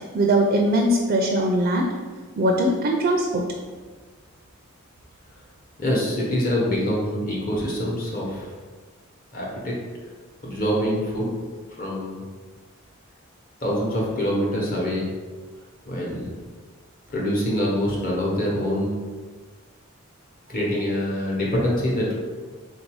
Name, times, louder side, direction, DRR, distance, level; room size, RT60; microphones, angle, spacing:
voice 1, 0.1-1.9 2.4-3.4, right 1 dB, 40° right, 1 dB, 0.4 m, -20 dB
voice 2, 5.8-8.5 9.3-9.8 10.4-11.3 11.8-12.2 13.6-15.1 15.9-16.3 17.1-19.0 20.5-22.1, equal, 40° left, -3 dB, 1.0 m, -25 dB
3.6 x 2.6 x 4.7 m, 1.4 s
head